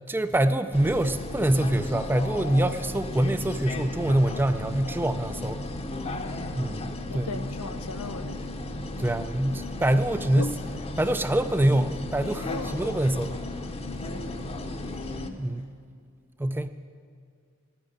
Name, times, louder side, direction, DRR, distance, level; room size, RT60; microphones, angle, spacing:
voice 1, 0.0-5.6 6.5-7.5 9.0-10.5 11.0-13.4 15.4-15.7 16.4-16.7, right 1 dB, 10° right, 11 dB, 0.3 m, -25 dB
sound 1, 0.7-15.3, left 2 dB, 25° left, 0.7 m, -35 dB
voice 2, 6.1-6.6 7.1-8.7 10.3-10.5 12.4-12.7 14.0-14.4, left 3 dB, 90° left, 10 dB, 0.8 m, -37 dB
11.5 x 8.9 x 9.8 m, 2.2 s
head